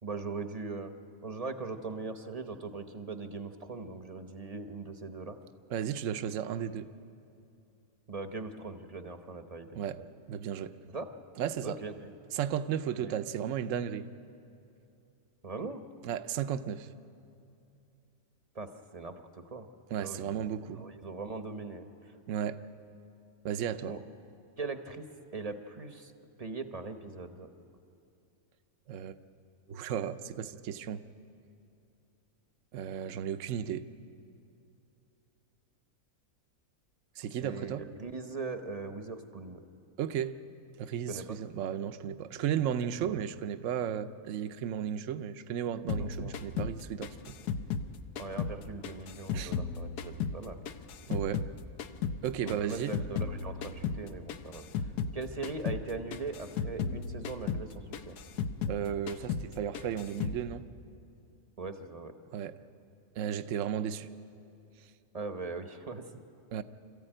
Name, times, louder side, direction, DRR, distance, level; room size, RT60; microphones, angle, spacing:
voice 1, 0.0-0.9 1.2-5.4 8.1-10.0 10.9-11.1 11.6-12.1 13.0-13.1 15.4-15.8 18.5-19.7 20.0-22.1 23.8-24.0 24.6-25.1 25.3-26.1 26.4-27.5 37.4-39.6 41.1-41.4 43.0-43.3 46.0-46.4 48.2-50.6 52.4-58.1 61.6-62.1 65.1-66.1, right 3 dB, 30° right, 7 dB, 0.8 m, -40 dB
voice 2, 5.7-6.9 9.8-10.0 10.3-10.7 11.4-11.8 12.3-14.1 16.0-16.9 19.9-20.8 22.3-22.6 23.4-23.9 28.9-29.2 29.7-31.0 32.7-33.8 37.2-37.8 40.0-40.4 40.8-47.3 49.3-49.5 51.1-51.4 52.2-52.9 58.7-60.6 62.3-62.6 63.2-64.1 66.5-66.6, right 9 dB, 60° right, 11 dB, 1.0 m, -34 dB
sound 1, 45.9-48.6 48.8-51.5 51.8-55.2 55.4-55.8 56.1-58.8 59.1-59.5 59.7-60.4, left 6 dB, 85° left, 1.3 m, -35 dB
26.5 x 14.5 x 9.0 m, 2.6 s
omnidirectional pair, 1.7 m